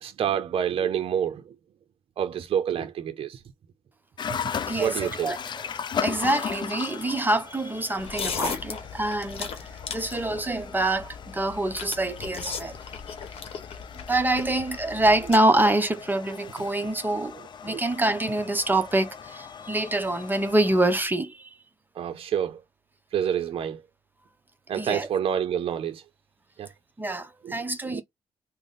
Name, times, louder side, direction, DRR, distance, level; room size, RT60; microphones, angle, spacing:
voice 1, 0.0-1.4 2.2-3.4 4.8-5.3 17.7-17.8 22.0-22.6 23.1-23.8 24.7-26.0 26.6-26.7 27.4-27.5 27.9-28.0, right 9 dB, 65° right, 0.5 m, -27 dB
sound 1, 4.2-21.0, left 7 dB, 50° left, 0.4 m, -38 dB
voice 2, 4.7-5.4 6.0-9.5 9.9-12.8 14.1-17.4 17.6-21.6 24.7-25.1 27.0-28.0, right 1 dB, 20° right, 0.7 m, -25 dB
sound 2, 8.0-15.4, left 6 dB, 70° left, 0.9 m, -37 dB
3.4 x 2.0 x 3.9 m
cardioid pair, 90°, 10 cm